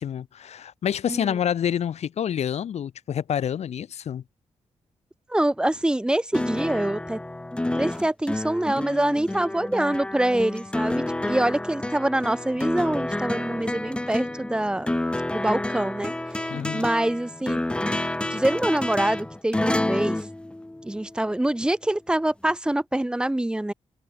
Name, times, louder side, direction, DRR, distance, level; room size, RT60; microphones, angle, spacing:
voice 1, 0.0-4.2 16.5-16.9, left 9 dB, 70° left, 1.7 m, -28 dB
voice 2, 5.3-7.2 7.8-14.9 15.3-17.6 18.3-20.2 20.8-23.7, right 1 dB, 5° right, 1.3 m, -25 dB
sound 1, 6.3-21.2 22.5-22.6, left 1 dB, 10° left, 1.5 m, -29 dB
wide cardioid pair, 155°, 12 cm